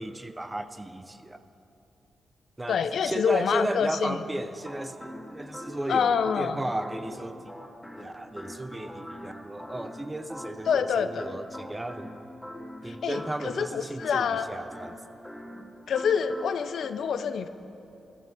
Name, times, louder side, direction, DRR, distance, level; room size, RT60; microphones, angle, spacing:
voice 1, 0.0-1.4 2.6-2.8 3.0-7.5 8.0-12.2 12.8-15.0, right 1 dB, 20° right, 11 dB, 0.6 m, -35 dB
voice 2, 2.7-4.2 5.9-6.6 10.7-11.4 12.9-14.5 15.9-17.5, left 6 dB, 75° left, 11 dB, 0.4 m, -26 dB
sound 1, 4.5-16.9, equal, ahead, 1.9 m, -43 dB
14.5 x 12.5 x 4.0 m, 2.9 s
supercardioid pair, 55°, 0 cm